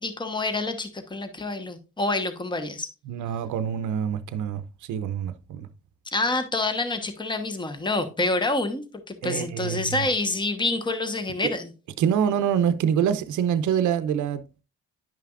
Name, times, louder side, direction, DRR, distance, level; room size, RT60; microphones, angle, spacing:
voice 1, 0.0-2.9 6.1-11.7, left 2 dB, 15° left, 1.1 m, -27 dB
voice 2, 3.1-5.7 9.2-10.0 11.4-11.5 12.0-14.6, right 8 dB, 75° right, 0.7 m, -26 dB
10.5 x 5.7 x 2.4 m
cardioid pair, 90°, 30 cm